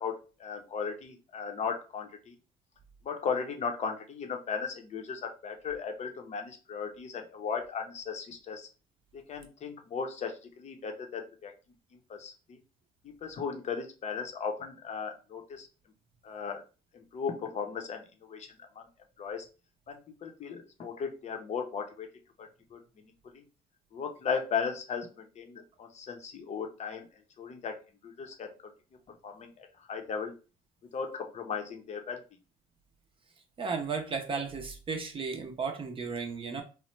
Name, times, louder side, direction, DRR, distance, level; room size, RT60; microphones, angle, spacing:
voice 1, 0.0-2.4 3.0-8.7 9.1-11.5 11.9-12.6 13.0-15.7 16.2-16.6 16.9-18.9 19.2-19.5 19.9-22.1 22.4-23.4 23.9-27.1 27.4-27.7 28.0-28.7 29.2-30.3 30.9-32.2, left 6 dB, 40° left, 5 dB, 0.6 m, -37 dB
voice 2, 33.6-36.6, right 5 dB, 30° right, 3 dB, 0.5 m, -34 dB
3.0 x 2.0 x 3.1 m, 0.34 s
cardioid pair, 110°, 17 cm